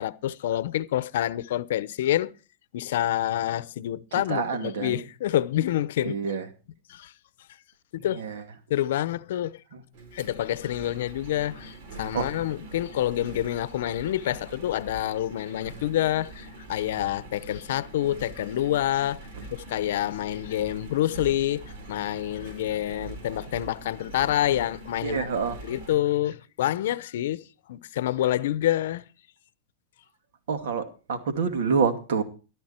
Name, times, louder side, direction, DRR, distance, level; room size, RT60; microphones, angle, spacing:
voice 1, 0.0-2.3 2.7-6.2 6.9-7.1 7.9-8.2 8.7-9.6 10.1-19.2 19.5-25.3 25.6-27.4 27.7-29.0, left 13 dB, 75° left, 0.7 m, -27 dB
voice 2, 4.1-5.0 6.0-6.4 8.0-8.4 9.7-9.8 12.1-12.3 25.0-25.6 30.5-32.2, right 5 dB, 80° right, 2.5 m, -27 dB
Engine, 9.9-26.0, right 2 dB, 60° right, 4.2 m, -43 dB
14.0 x 12.5 x 4.4 m
supercardioid pair, 155°, 0 cm